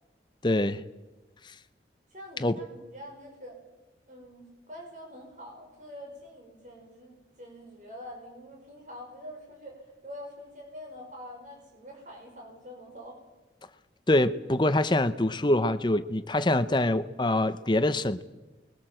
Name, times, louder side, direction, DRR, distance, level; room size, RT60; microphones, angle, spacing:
voice 1, 0.4-0.8 2.4-2.6 14.1-18.2, left 1 dB, 25° left, 12 dB, 0.8 m, -25 dB
voice 2, 2.1-3.6 4.1-13.2, equal, 45° right, 0 dB, 5.9 m, -45 dB
29.5 x 22.0 x 7.7 m, 1.1 s
head